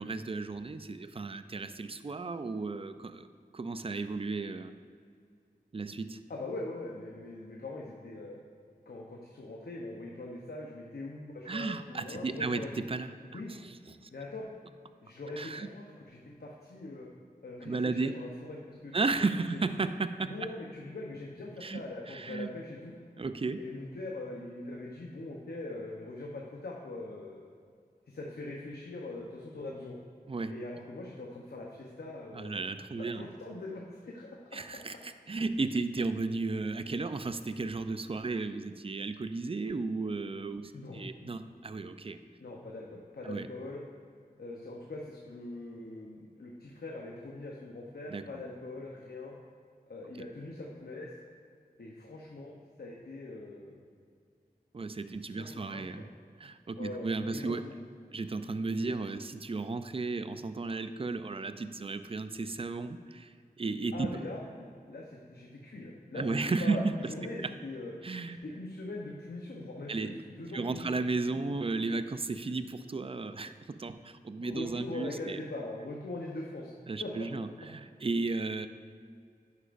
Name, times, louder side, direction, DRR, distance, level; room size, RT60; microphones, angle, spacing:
voice 1, 0.0-3.3 3.5-4.7 5.7-6.2 11.5-14.1 15.4-15.7 17.6-18.1 18.9-20.5 21.6-21.8 22.1-22.5 23.2-23.6 30.3-30.5 32.3-33.3 34.5-42.2 43.2-43.5 48.1-48.2 50.2-50.3 54.7-56.1 56.4-57.7 58.1-64.2 66.1-67.0 67.4-67.5 68.0-68.4 69.9-70.2 70.5-75.4 76.9-78.7, right 3 dB, 35° right, 11 dB, 0.4 m, -34 dB
voice 2, 6.3-8.4 8.9-12.7 13.3-13.5 14.1-14.5 15.0-17.1 17.4-19.0 19.4-19.6 20.3-23.0 23.6-27.5 28.1-30.0 30.5-32.6 33.0-34.6 40.7-41.3 42.4-43.8 44.4-49.3 49.9-51.1 51.8-53.8 55.3-56.1 56.8-57.7 58.6-58.7 63.9-67.9 68.4-71.1 74.4-76.7 77.0-77.3, left 2 dB, 75° left, -2 dB, 0.9 m, -42 dB
10.5 x 8.0 x 2.6 m, 2.2 s
wide cardioid pair, 40°, 16 cm